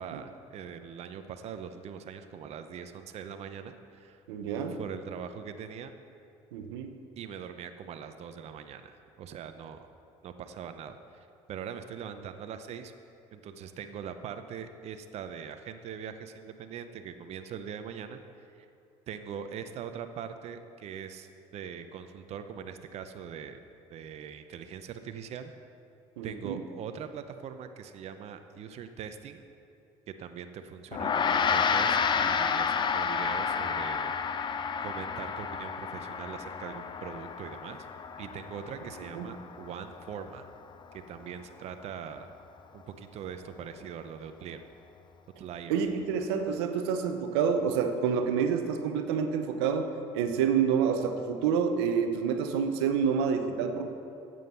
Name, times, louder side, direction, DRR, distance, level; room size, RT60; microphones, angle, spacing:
voice 1, 0.0-4.2 4.7-5.9 7.2-9.9 10.2-12.9 13.3-18.2 18.5-18.7 19.1-23.6 23.9-25.5 26.2-29.4 30.1-34.5 34.8-37.9 38.2-40.5 40.9-42.3 42.7-44.6 45.4-45.7, right 7 dB, 55° right, 9 dB, 0.7 m, -42 dB
voice 2, 4.3-4.8 6.5-6.9 26.2-26.6 39.1-39.3 45.7-53.9, right 6 dB, 90° right, 7 dB, 0.7 m, -28 dB
Gong, 30.9-40.5, left 6 dB, 35° left, 0.6 m, -30 dB
9.1 x 7.8 x 6.9 m, 2.6 s
supercardioid pair, 80°, 13 cm